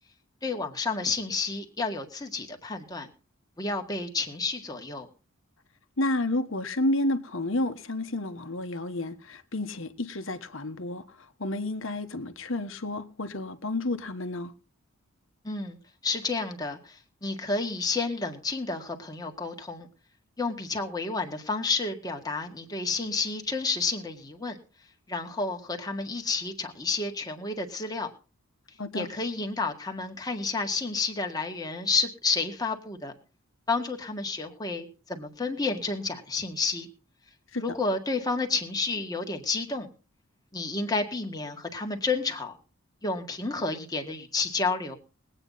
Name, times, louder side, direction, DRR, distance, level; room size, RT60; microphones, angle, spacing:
voice 1, 0.4-3.1 3.6-5.1 15.4-19.9 20.4-24.6 25.1-28.1 28.9-33.1 33.7-36.9 37.6-39.9 40.5-42.5 43.0-44.9, left 3 dB, 20° left, 1.7 m, -30 dB
voice 2, 6.0-11.0 11.4-14.5 28.8-29.1 37.5-37.6, left 1 dB, 60° left, 1.3 m, -30 dB
21.5 x 8.9 x 4.0 m
head